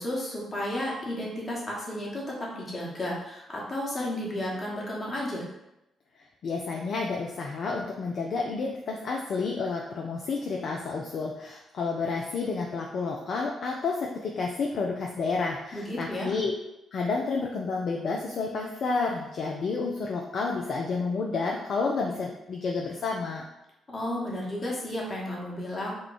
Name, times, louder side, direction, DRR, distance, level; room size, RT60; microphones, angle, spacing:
voice 1, 0.0-5.5 15.7-16.3 23.9-25.9, left 1 dB, 40° left, -4 dB, 1.3 m, -33 dB
voice 2, 6.4-16.5 16.9-23.4, left 4 dB, 55° left, 0 dB, 0.4 m, -30 dB
3.1 x 2.2 x 3.9 m, 0.89 s
hypercardioid pair, 40°, 0 cm